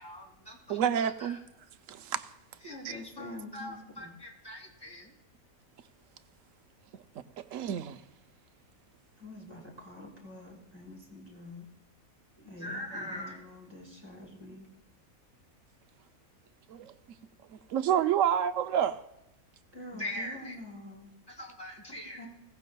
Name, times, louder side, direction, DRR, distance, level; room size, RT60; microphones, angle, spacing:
voice 1, 0.0-1.4 2.6-5.1 12.4-13.4 19.9-20.6 21.3-22.2, left 1 dB, 15° left, 2.4 m, -42 dB
voice 2, 0.7-1.4 1.9-2.3 2.8-2.9 7.4-8.0 16.7-16.9 17.5-19.0, right 9 dB, 70° right, 0.9 m, -29 dB
voice 3, 2.6-4.1 9.2-11.7 12.4-14.7 19.7-21.1 22.1-22.3, left 2 dB, 15° right, 2.9 m, -46 dB
21.0 x 16.5 x 2.3 m
omnidirectional pair, 1.5 m